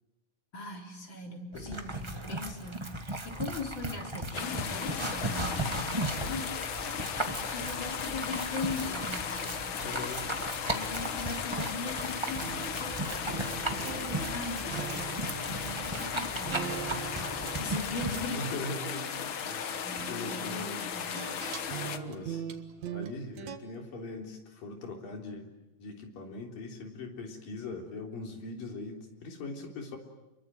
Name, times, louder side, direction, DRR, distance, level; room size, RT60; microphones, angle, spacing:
voice 1, 0.5-6.6 7.4-9.7 10.6-15.2 15.5-18.5 19.8-21.4 22.0-22.5, left 3 dB, 35° left, 2 dB, 4.0 m, -40 dB
voice 2, 1.5-2.0 9.8-10.3 18.3-19.7 20.1-20.8 21.9-22.4 22.9-25.5 25.8-30.0, left 2 dB, 75° left, 2 dB, 5.3 m, -41 dB
sound 1, 1.5-18.3, right 1 dB, 30° right, 0.5 m, -37 dB
sound 2, 4.3-22.0, left 7 dB, 60° left, 1.3 m, -36 dB
sound 3, 12.4-23.6, right 9 dB, 55° right, 2.7 m, -42 dB
29.0 x 23.0 x 9.1 m, 0.99 s
omnidirectional pair, 3.9 m